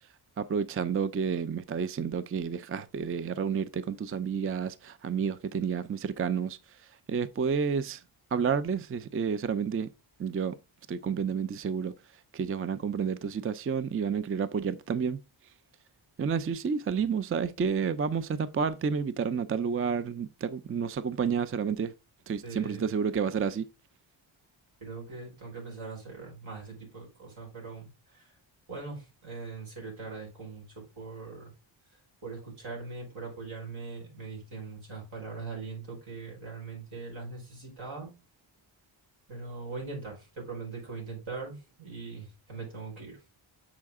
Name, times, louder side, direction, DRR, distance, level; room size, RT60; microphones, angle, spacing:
voice 1, 0.4-6.8 7.1-8.0 8.3-9.9 10.2-10.5 10.9-11.9 12.3-15.2 16.2-21.9 22.3-23.7, right 6 dB, 30° right, 0.4 m, -30 dB
voice 2, 22.4-22.9 24.8-28.3 28.7-31.5 31.9-38.1 39.3-43.2, right 4 dB, 75° right, 4.6 m, -41 dB
7.4 x 4.8 x 3.6 m
wide cardioid pair, 90°, 49 cm